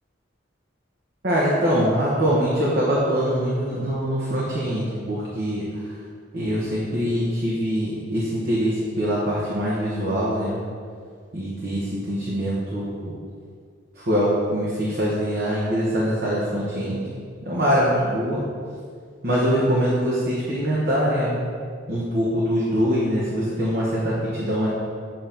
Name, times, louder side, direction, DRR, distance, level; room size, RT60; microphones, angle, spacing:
voice 1, 1.2-5.6 6.3-10.6 11.3-13.1 14.0-17.0 17.4-18.4 19.2-21.4 21.9-24.7, equal, 50° right, -7 dB, 1.1 m, -23 dB
8.0 x 2.9 x 5.2 m, 2.1 s
head